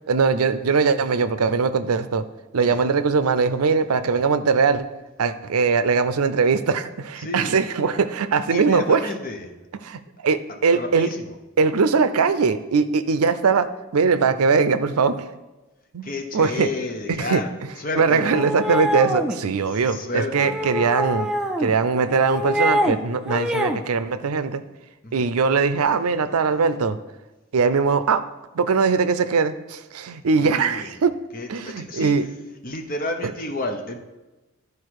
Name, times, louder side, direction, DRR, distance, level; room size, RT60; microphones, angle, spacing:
voice 1, 0.1-2.2 2.5-4.9 5.2-9.0 9.8-11.1 11.6-15.3 15.9-16.7 17.1-17.4 18.0-21.3 21.6-24.6 25.1-27.0 27.5-28.2 28.5-31.2 31.5-32.3 33.2-33.3, right 5 dB, 85° right, 12 dB, 0.5 m, -21 dB
voice 2, 7.2-7.6 8.5-9.5 10.7-11.4 16.0-17.5 17.8-18.5 19.7-20.9 25.0-25.3 30.3-30.9 31.3-32.1 32.6-34.0, left 2 dB, 40° left, 4 dB, 0.9 m, -31 dB
sound 1, 18.3-19.4 20.4-21.7 22.1-23.0 23.3-23.8, equal, 5° right, 0.5 m, -25 dB
12.0 x 4.8 x 4.8 m, 1.1 s
head